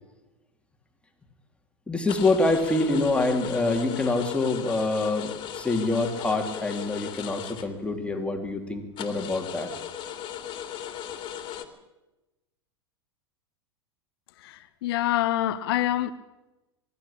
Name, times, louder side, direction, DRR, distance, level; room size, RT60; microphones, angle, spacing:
voice 1, 1.9-9.7, left 2 dB, 10° left, 3.1 m, -26 dB
sound 1, 2.1-8.1 8.5-8.6 9.0-11.7, left 10 dB, 35° left, 2.9 m, -37 dB
voice 2, 14.4-16.1, left 14 dB, 60° left, 1.0 m, -26 dB
23.5 x 13.0 x 8.8 m
hypercardioid pair, 95°, 14 cm